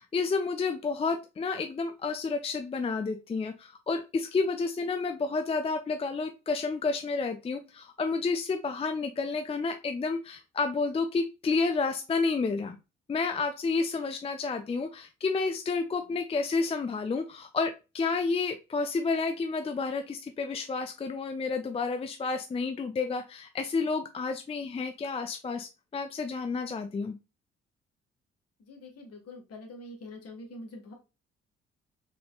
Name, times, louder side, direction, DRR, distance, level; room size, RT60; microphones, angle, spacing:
voice 1, 0.0-12.8 13.1-27.2, left 4 dB, 20° left, 7 dB, 0.4 m, -30 dB
voice 2, 28.6-30.9, left 1 dB, 50° left, 2 dB, 1.5 m, -45 dB
3.9 x 3.6 x 2.2 m, 0.28 s
hypercardioid pair, 45°, 30 cm